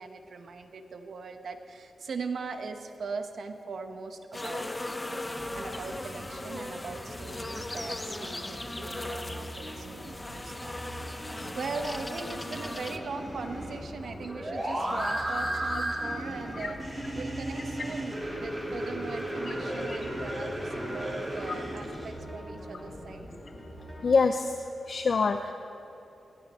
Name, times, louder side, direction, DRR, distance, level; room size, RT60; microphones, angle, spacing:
voice 1, 0.0-11.3 11.5-16.8 17.1-23.3, right 4 dB, 70° right, 6 dB, 1.2 m, -40 dB
sound 1, 4.3-13.0, left 1 dB, 20° left, 0.8 m, -38 dB
sound 2, 5.3-24.1, right 1 dB, 10° right, 4.1 m, -45 dB
sound 3, 12.9-22.1, right 1 dB, 25° right, 4.5 m, -34 dB
voice 2, 24.0-25.5, left 4 dB, 60° left, 7 dB, 0.6 m, -26 dB
19.0 x 15.5 x 4.4 m, 2.9 s
cardioid pair, 90°, 0 cm